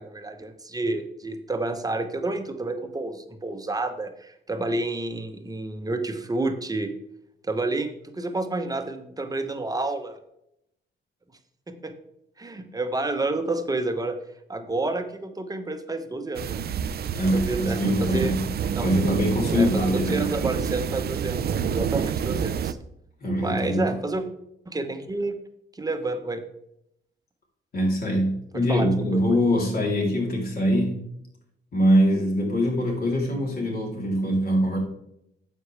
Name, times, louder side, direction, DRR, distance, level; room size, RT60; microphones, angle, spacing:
voice 1, 0.0-6.9 7.4-10.2 11.7-11.9 12.4-14.2 14.5-16.6 17.2-18.4 18.7-18.9 19.5-22.8 23.4-24.2 24.7-25.4 25.7-26.4 28.5-29.2, right 2 dB, 20° right, 7 dB, 1.0 m, -29 dB
sound 1, 16.3-22.7, right 8 dB, 55° right, 0.5 m, -28 dB
voice 2, 17.1-18.4 18.8-20.3 23.2-24.0 27.7-31.1 31.7-34.8, equal, 50° left, -1 dB, 3.5 m, -23 dB
9.6 x 7.7 x 3.4 m, 0.77 s
cardioid pair, 125°, 20 cm